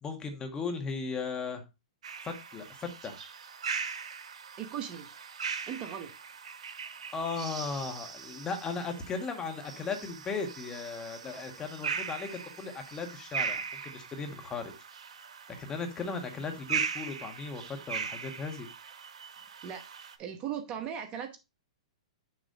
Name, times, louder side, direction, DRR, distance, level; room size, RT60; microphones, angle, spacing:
voice 1, 0.0-1.6 2.2-3.2 7.1-14.7 15.5-18.7, left 4 dB, 20° left, 5 dB, 1.4 m, -37 dB
sound 1, 2.0-20.1, right 6 dB, 75° right, 1.1 m, -39 dB
voice 2, 4.6-5.1 5.7-6.1 19.6-19.8 20.2-21.4, right 9 dB, 30° right, 6 dB, 1.1 m, -37 dB
6.6 x 3.0 x 5.4 m, 0.25 s
hypercardioid pair, 130°, 4 cm